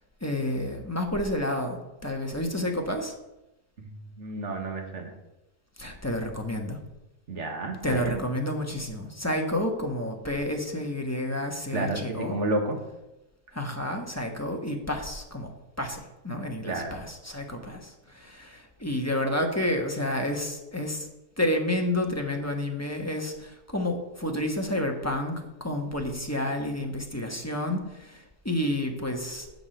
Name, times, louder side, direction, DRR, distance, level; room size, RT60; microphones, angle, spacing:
voice 1, 0.2-3.1 5.8-6.8 7.8-12.3 13.5-15.5 15.8-21.1 21.4-25.3 25.6-29.5, left 1 dB, 10° left, 2 dB, 1.1 m, -30 dB
voice 2, 3.8-5.1 7.3-8.2 11.7-12.8 16.7-16.9, right 2 dB, 55° right, 3 dB, 1.9 m, -31 dB
9.5 x 4.9 x 7.9 m, 0.94 s
omnidirectional pair, 1.5 m